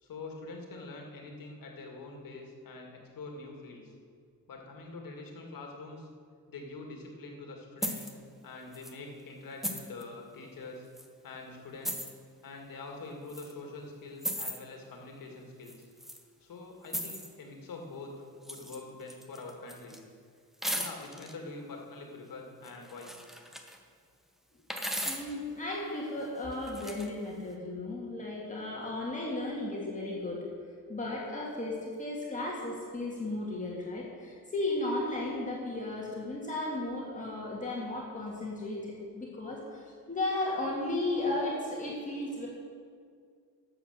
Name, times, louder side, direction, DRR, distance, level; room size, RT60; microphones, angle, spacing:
voice 1, 0.0-3.9 4.5-6.1 6.5-8.1 8.4-10.8 11.2-12.0 12.4-15.9 16.4-20.0 20.7-23.1, left 3 dB, 65° left, 1 dB, 2.2 m, -45 dB
sound 1, 7.8-8.1 8.7-8.9 9.6-10.0 11.0-11.1 11.8-12.1 13.3-13.5 14.2-14.6 15.7-16.2 16.9-17.3 18.4-18.8 19.1-20.0 20.6-21.3 22.6-23.8 24.7-25.4 26.5-27.1, equal, ahead, 0.9 m, -37 dB
voice 2, 25.1-30.5 30.9-42.5, left 2 dB, 20° left, -4 dB, 2.0 m, -35 dB
12.5 x 7.7 x 6.7 m, 2.1 s
wide cardioid pair, 160°, 36 cm